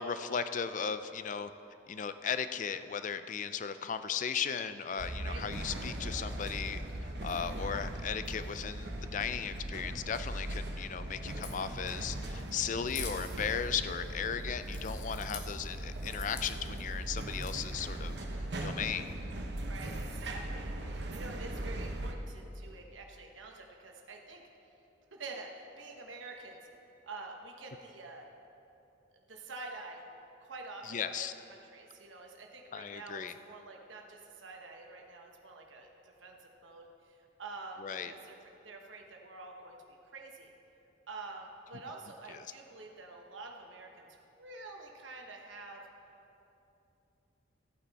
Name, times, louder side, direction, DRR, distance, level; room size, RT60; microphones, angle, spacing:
voice 1, 0.0-1.5 1.9-18.1 18.6-19.0 30.8-31.3 32.7-33.3 37.8-38.1 42.3-42.5, left 7 dB, 40° left, 11 dB, 0.4 m, -36 dB
sound 1, 5.0-22.1, right 1 dB, 60° right, 0.9 m, -39 dB
Crack, 11.3-18.2, left 4 dB, 60° left, 1.3 m, -48 dB
voice 2, 19.6-24.4 25.1-26.6 27.0-28.3 29.3-30.1 30.4-36.4 36.6-38.4 38.6-39.8 40.0-40.5 41.1-44.1 44.4-45.9, right 3 dB, 80° right, 1 dB, 1.1 m, -47 dB
14.5 x 8.8 x 4.1 m, 2.9 s
head